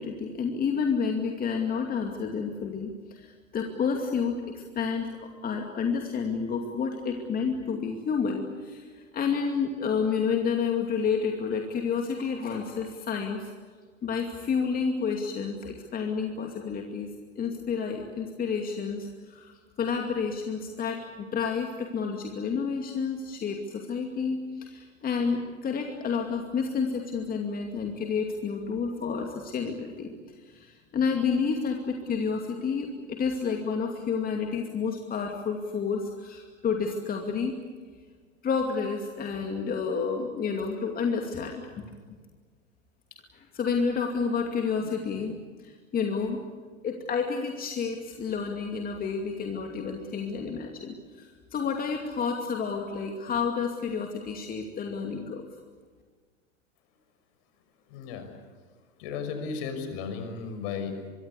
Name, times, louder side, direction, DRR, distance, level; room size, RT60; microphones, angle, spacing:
voice 1, 0.0-5.1 5.4-13.5 14.0-30.1 30.4-37.6 38.4-41.9 43.3-46.4 46.8-55.4, left 5 dB, 20° left, 3 dB, 2.5 m, -30 dB
voice 2, 57.9-58.3 59.0-61.1, left 5 dB, 50° left, 7 dB, 5.9 m, -34 dB
24.0 x 24.0 x 8.4 m, 1.5 s
figure-of-eight pair, 100°, 39 cm